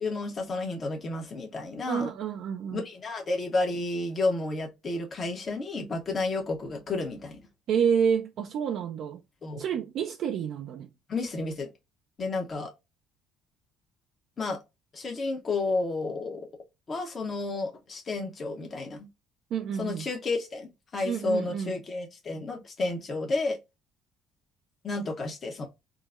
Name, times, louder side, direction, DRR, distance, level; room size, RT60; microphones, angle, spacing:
voice 1, 0.0-2.1 2.7-7.4 9.4-9.6 11.1-11.7 12.2-12.7 14.4-14.6 14.9-16.5 16.9-19.1 19.8-23.6 24.8-25.7, left 3 dB, 40° left, 0.8 m, -31 dB
voice 2, 1.9-2.8 7.7-9.2 9.6-10.9 19.5-20.1 21.0-21.7, right 7 dB, 60° right, 0.4 m, -29 dB
3.7 x 2.0 x 2.3 m
hypercardioid pair, 65°, 0 cm